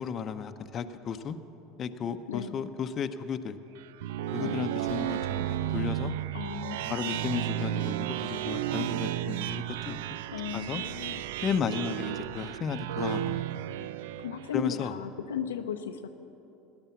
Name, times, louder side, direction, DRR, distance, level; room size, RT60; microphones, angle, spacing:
voice 1, 0.0-1.4 1.8-3.6 4.3-6.1 6.9-10.0 10.5-10.8 11.4-13.4 14.5-14.9, left 7 dB, 40° left, 9 dB, 0.8 m, -34 dB
voice 2, 2.3-2.6 4.4-4.6 6.3-7.8 10.3-11.2 14.2-16.1, left 8 dB, 80° left, 7 dB, 0.6 m, -36 dB
sound 1, 3.8-14.6, right 12 dB, 70° right, 0.3 m, -33 dB
17.5 x 10.5 x 7.2 m, 2.9 s
hypercardioid pair, 75°, 0 cm